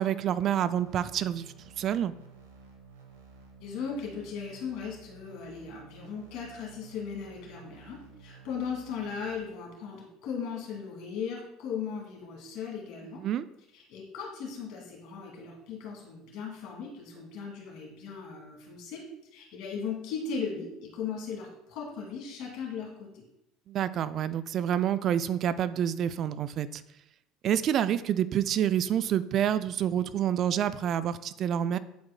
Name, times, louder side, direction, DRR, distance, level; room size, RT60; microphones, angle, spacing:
voice 1, 0.0-1.5 1.8-2.1 13.2-13.5 23.7-26.8 27.4-31.8, right 10 dB, 50° right, 14 dB, 0.3 m, -28 dB
sound 1, 0.8-9.4, right 4 dB, 90° right, 1.2 m, -53 dB
voice 2, 3.6-13.2 13.7-19.0 19.3-23.2, left 6 dB, 70° left, -1 dB, 2.5 m, -37 dB
11.0 x 4.7 x 2.2 m, 0.84 s
supercardioid pair, 90°, 0 cm